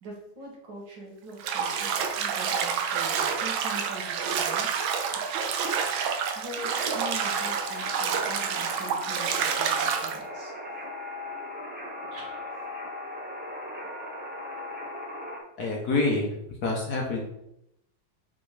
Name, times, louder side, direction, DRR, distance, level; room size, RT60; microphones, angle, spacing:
voice 1, 0.0-4.7 5.3-5.7 6.3-10.5 12.1-12.3, right 2 dB, 60° right, -2 dB, 2.2 m, -43 dB
Bathtub (filling or washing), 1.4-10.2, right 7 dB, 80° right, 1.5 m, -28 dB
sound 1, 6.5-15.4, left 2 dB, 10° right, 0.7 m, -38 dB
voice 2, 15.6-16.3 16.6-17.3, left 3 dB, 55° left, -1 dB, 1.4 m, -26 dB
6.0 x 3.7 x 4.9 m, 0.81 s
omnidirectional pair, 2.2 m